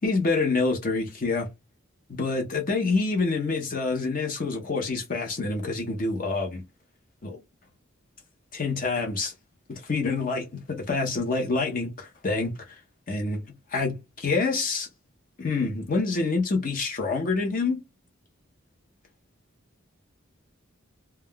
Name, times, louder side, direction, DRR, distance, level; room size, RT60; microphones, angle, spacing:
voice 1, 0.0-1.5 2.1-6.6 7.2-7.4 8.5-9.3 9.7-12.5 13.1-13.4 13.7-14.9 15.4-17.8, left 3 dB, 45° left, 0.6 m, -27 dB
2.2 x 2.2 x 3.6 m
head